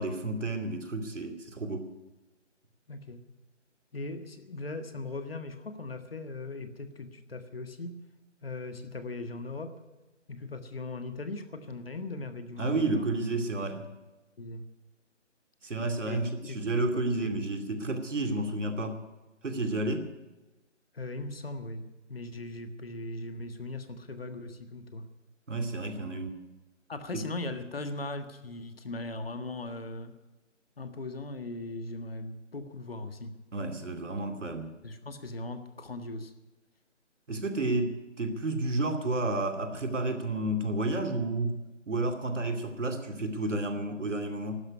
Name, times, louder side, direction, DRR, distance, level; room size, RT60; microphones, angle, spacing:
voice 1, 0.0-1.9 12.6-13.9 15.6-19.0 19.4-20.0 25.5-26.4 27.1-27.2 33.5-34.7 37.3-41.5 41.9-44.5, right 2 dB, 75° right, 6 dB, 2.7 m, -31 dB
voice 2, 2.9-3.2 3.9-8.0 8.4-9.8 10.3-13.1 14.4-14.6 16.1-16.6 17.2-17.3 20.9-25.1 26.9-30.1 30.8-33.3 34.8-36.3, left 2 dB, 50° left, 8 dB, 1.6 m, -39 dB
12.0 x 10.5 x 9.7 m, 1.1 s
hypercardioid pair, 175°, 37 cm